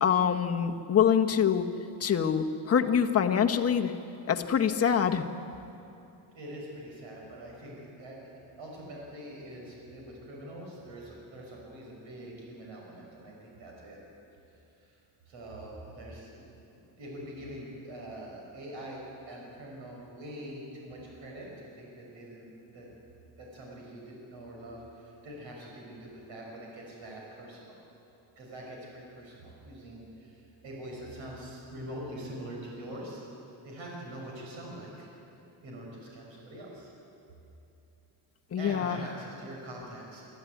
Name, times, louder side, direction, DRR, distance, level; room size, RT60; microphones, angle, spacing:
voice 1, 0.0-1.7 2.0-3.9 4.3-5.2 38.5-39.0, left 8 dB, 30° left, 4 dB, 1.2 m, -25 dB
voice 2, 6.3-14.0 14.8-15.0 15.3-16.4 16.7-22.9 23.4-27.7 28.4-33.2 33.6-35.1 35.6-36.9 38.6-40.2, right 1 dB, 70° right, -2 dB, 6.4 m, -44 dB
25.0 x 13.5 x 9.3 m, 2.8 s
cardioid pair, 135°, 48 cm